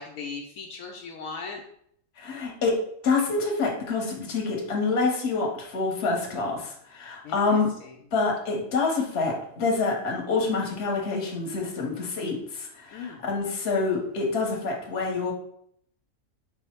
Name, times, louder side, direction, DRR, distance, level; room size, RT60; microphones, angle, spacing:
voice 1, 0.0-1.6 7.2-7.9 12.9-13.2, left 4 dB, 75° left, 1 dB, 1.0 m, -38 dB
voice 2, 2.2-2.8 3.0-7.7 8.1-15.3, left 4 dB, 50° left, 0 dB, 1.1 m, -27 dB
5.1 x 2.1 x 4.2 m, 0.68 s
omnidirectional pair, 1.5 m